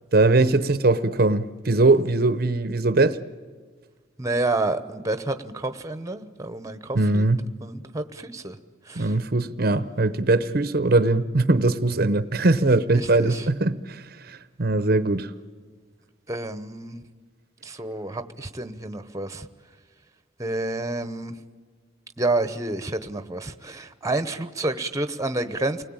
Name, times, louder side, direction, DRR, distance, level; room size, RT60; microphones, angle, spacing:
voice 1, 0.1-3.2 6.9-7.5 9.0-15.3, right 2 dB, 50° right, 0.8 m, -21 dB
voice 2, 4.2-7.3 7.6-8.6 8.9-9.1 12.9-13.4 16.3-17.0 17.6-19.5 20.4-21.3 22.2-25.8, right 2 dB, 15° right, 1.0 m, -29 dB
29.5 x 20.5 x 8.9 m
head